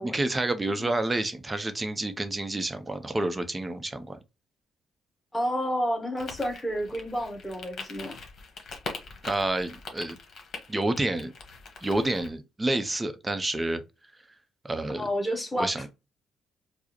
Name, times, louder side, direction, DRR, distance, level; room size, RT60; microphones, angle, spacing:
voice 1, 0.0-4.2 9.2-10.2 10.7-11.3 11.8-13.8 14.6-15.1 15.6-15.9, right 2 dB, 20° right, 0.5 m, -29 dB
voice 2, 5.3-8.2 15.0-15.9, equal, 10° left, 1.4 m, -30 dB
sound 1, 6.2-12.3, left 4 dB, 60° left, 1.1 m, -42 dB
4.7 x 2.0 x 2.9 m
cardioid pair, 90°, 0 cm